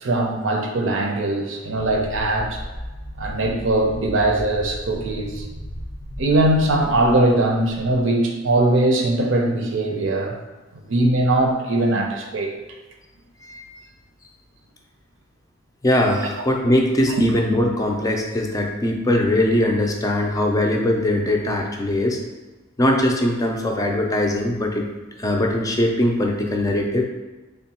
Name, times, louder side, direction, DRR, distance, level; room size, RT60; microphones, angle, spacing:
voice 1, 0.0-2.6 3.2-5.4 6.2-10.4 10.9-12.5 17.2-17.3, right 2 dB, 85° right, 1 dB, 0.6 m, -20 dB
sound 1, 1.7-8.0, equal, 90° left, 0.7 m, -35 dB
voice 2, 15.8-22.2 22.8-24.8 25.2-27.0, left 1 dB, 20° left, 1 dB, 0.4 m, -21 dB
3.5 x 2.2 x 4.1 m, 1.2 s
head